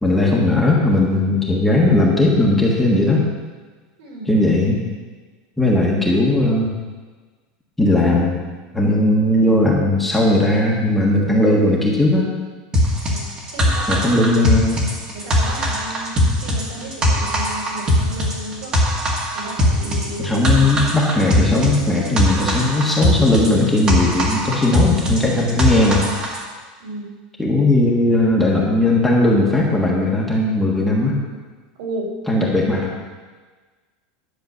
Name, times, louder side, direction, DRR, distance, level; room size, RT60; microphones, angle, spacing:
voice 1, 0.0-3.3 4.3-4.8 5.6-6.7 7.8-8.4 8.7-12.3 13.9-14.8 20.2-26.0 27.4-31.2 32.3-32.9, left 2 dB, 5° left, -4 dB, 1.5 m, -17 dB
voice 2, 4.0-4.5 13.1-14.1 14.4-14.5 15.1-18.9 19.3-20.8 26.8-27.1 31.8-32.1, right 2 dB, 75° right, -1 dB, 3.9 m, -33 dB
sound 1, 12.7-26.4, equal, 20° right, 1.6 m, -20 dB
11.0 x 6.9 x 6.6 m, 1.4 s
supercardioid pair, 170°, 4 cm